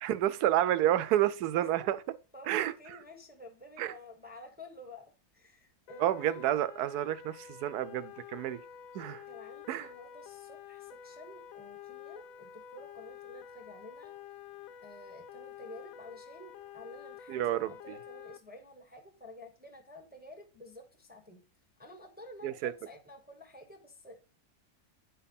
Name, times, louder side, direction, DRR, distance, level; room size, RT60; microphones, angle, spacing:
voice 1, 0.0-2.0 2.5-2.7 3.8-3.9 6.0-8.6 8.9-9.2 9.7-9.9 17.3-17.7 22.4-22.7, right 12 dB, 90° right, 1.1 m, -29 dB
voice 2, 1.5-2.0 2.3-6.5 9.3-14.1 14.8-21.4 21.8-24.2, left 1 dB, 5° right, 1.0 m, -51 dB
sound 1, 5.9-18.4, left 9 dB, 70° left, 1.0 m, -49 dB
9.4 x 4.6 x 5.3 m
omnidirectional pair, 1.6 m